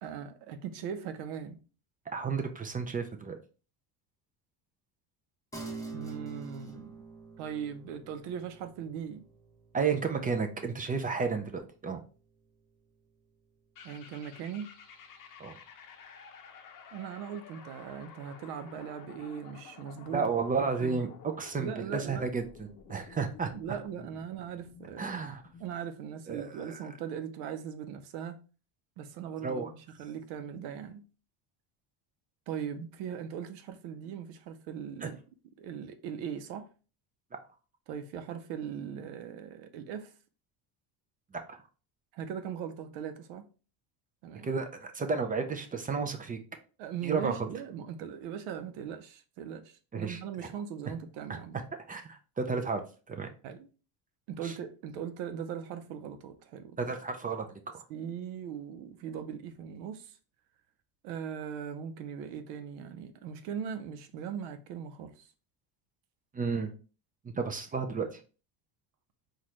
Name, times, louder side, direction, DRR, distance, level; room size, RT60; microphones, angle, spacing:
voice 1, 0.0-1.6 5.9-7.0 7.4-9.2 13.8-14.7 16.9-20.3 20.8-21.0 21.6-22.3 23.5-25.2 25.6-28.4 29.0-31.0 32.5-35.2 35.6-36.7 37.9-40.1 42.1-43.5 44.2-44.5 46.8-51.6 53.4-53.7 54.3-57.0 57.9-60.2 61.0-65.3, right 8 dB, 85° right, 0.7 m, -39 dB
voice 2, 2.1-3.4 9.7-12.0 15.4-15.5 20.1-23.5 25.0-25.4 26.3-26.8 29.4-29.7 35.0-35.1 41.3-41.6 44.4-46.4 47.0-47.5 49.9-50.2 51.3-51.4 51.9-52.8 53.1-53.3 54.4-54.5 56.8-57.8 66.3-66.7 67.2-68.2, right 5 dB, 20° right, 0.3 m, -32 dB
sound 1, 5.5-15.3, right 3 dB, 5° left, 1.0 m, -48 dB
sound 2, 13.7-25.8, left 6 dB, 40° left, 0.8 m, -52 dB
4.1 x 2.5 x 3.0 m
supercardioid pair, 100°, 49 cm